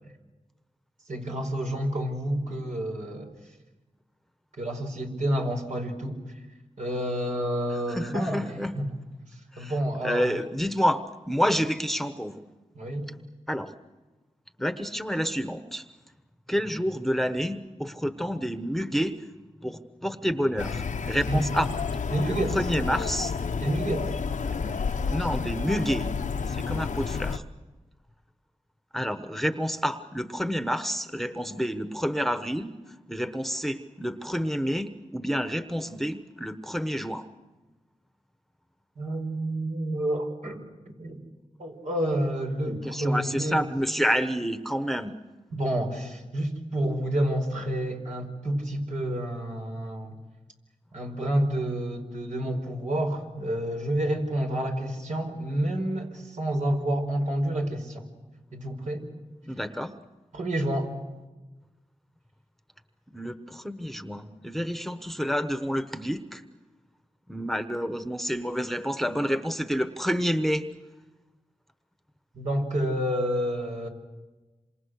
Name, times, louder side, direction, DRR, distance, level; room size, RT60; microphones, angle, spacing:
voice 1, 1.1-3.3 4.6-6.2 6.8-8.9 9.3-10.3 12.7-13.1 21.3-21.6 22.1-22.6 23.6-24.1 39.0-41.2 41.6-43.6 45.5-50.2 50.9-58.0 58.5-59.1 60.3-60.9 72.3-73.9, right 1 dB, 75° right, 2 dB, 5.2 m, -29 dB
voice 2, 7.9-8.7 9.5-9.7 10.0-12.4 13.5-13.7 14.6-15.8 16.5-19.2 19.6-21.7 22.2-23.4 24.4-24.8 25.1-26.1 26.5-27.4 28.9-32.7 33.1-37.2 42.7-45.1 59.4-59.9 63.1-66.4 67.3-70.7, equal, ahead, 9 dB, 1.1 m, -29 dB
sound 1, 20.6-27.4, left 5 dB, 85° left, 0.9 m, -30 dB
27.5 x 26.5 x 6.5 m, 1.2 s
wide cardioid pair, 80°, 13 cm